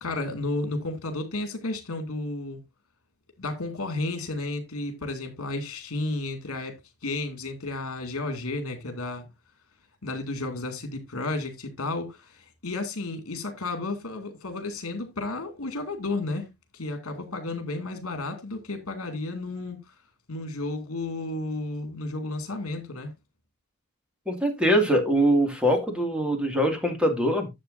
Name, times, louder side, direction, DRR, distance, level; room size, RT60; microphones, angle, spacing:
voice 1, 0.0-2.6 3.4-9.3 10.0-19.8 20.3-23.1, left 2 dB, 65° left, 2.5 m, -32 dB
voice 2, 24.3-27.5, equal, 5° right, 2.3 m, -23 dB
11.5 x 7.4 x 2.7 m
head